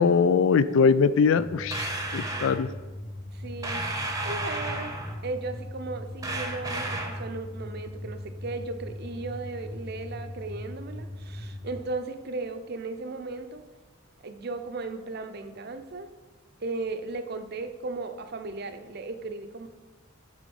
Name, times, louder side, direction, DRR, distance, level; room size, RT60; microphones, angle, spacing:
voice 1, 0.0-2.7, left 5 dB, 65° left, 15 dB, 0.3 m, -22 dB
sound 1, 1.4-11.8, left 1 dB, 30° left, 0.9 m, -39 dB
sound 2, 1.7-2.6 3.6-5.2 6.2-7.3, right 2 dB, 15° right, 0.8 m, -33 dB
voice 2, 3.3-3.8 4.2-4.9 5.2-13.6 14.2-16.1 16.6-19.7, right 3 dB, 50° right, 8 dB, 0.6 m, -36 dB
11.0 x 3.7 x 5.4 m, 1.3 s
head